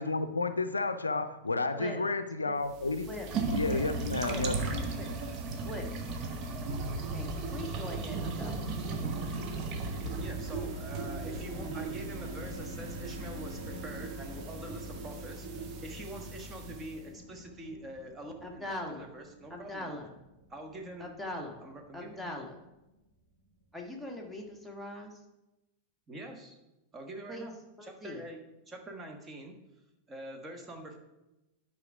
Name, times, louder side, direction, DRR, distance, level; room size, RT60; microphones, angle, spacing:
voice 1, 0.0-3.1 3.5-4.8, left 3 dB, 80° left, 11 dB, 0.5 m, -31 dB
sound 1, 2.7-17.0, right 3 dB, 35° right, 1.1 m, -37 dB
voice 2, 7.1-8.7 18.4-19.0 19.5-20.2 21.0-21.6 21.9-22.6 23.7-25.2 27.3-27.5 27.8-28.2, left 1 dB, ahead, 1 dB, 1.5 m, -41 dB
sound 2, 7.1-23.0 23.4-23.5 23.7-24.0, right 1 dB, 90° right, 3.2 m, -48 dB
voice 3, 10.2-19.9 20.5-21.1 21.6-22.3 26.1-26.6 26.9-27.5 27.8-28.4 28.7-29.6 30.1-31.0, right 1 dB, 20° right, 2 dB, 1.5 m, -45 dB
9.7 x 4.7 x 4.9 m, 0.99 s
figure-of-eight pair, 90°, 0 cm